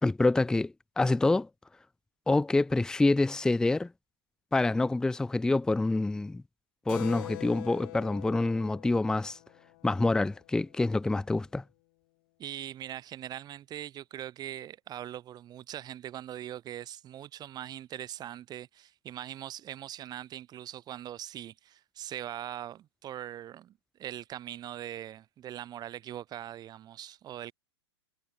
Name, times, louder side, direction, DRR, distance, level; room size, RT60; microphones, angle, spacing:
voice 1, 0.0-1.5 2.3-3.9 4.5-6.4 6.9-9.4 9.8-11.6, left 2 dB, 5° left, 0.7 m, -26 dB
Keyboard (musical), 6.9-11.0, left 22 dB, 50° left, 7.8 m, -45 dB
voice 2, 12.4-27.5, right 11 dB, 30° right, 6.1 m, -41 dB
hypercardioid pair, 105°, 14 cm